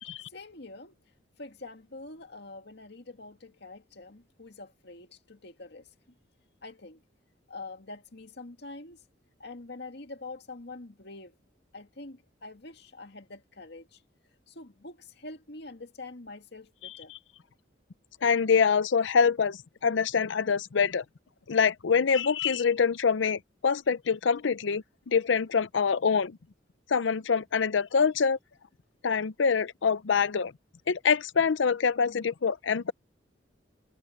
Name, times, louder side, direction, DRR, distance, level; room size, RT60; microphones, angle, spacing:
voice 1, 0.3-1.0 1.4-5.9 6.6-7.0 7.5-9.0 9.4-11.4 11.7-14.0 14.5-17.1, left 2 dB, 60° left, 2.1 m, -45 dB
voice 2, 18.2-21.0 21.5-26.4 26.9-28.4 29.0-30.5 30.9-32.9, left 6 dB, 75° left, 0.6 m, -25 dB
head